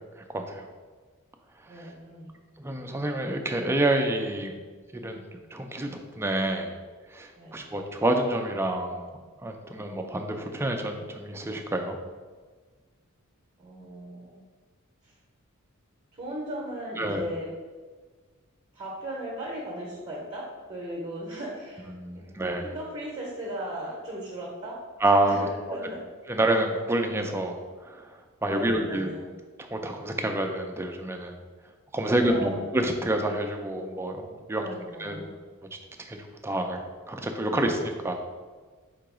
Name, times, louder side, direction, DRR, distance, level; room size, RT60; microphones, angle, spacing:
voice 1, 0.2-0.7 1.7-1.9 2.6-4.5 4.9-6.8 7.1-9.1 9.4-12.0 17.0-17.2 22.0-22.7 25.0-25.4 25.7-25.8 26.3-27.6 27.8-29.1 29.6-31.4 31.9-34.6 35.0-35.2 36.0-36.8 37.1-38.1, right 1 dB, 10° right, 4 dB, 0.3 m, -28 dB
voice 2, 1.7-2.6 7.4-7.7 13.6-14.4 15.0-15.1 16.1-17.5 18.7-22.3 22.6-24.8 25.3-26.0 28.5-29.3 32.0-32.6 34.5-35.3, right 1 dB, 30° right, -3 dB, 0.7 m, -37 dB
3.9 x 2.9 x 4.8 m, 1.4 s
head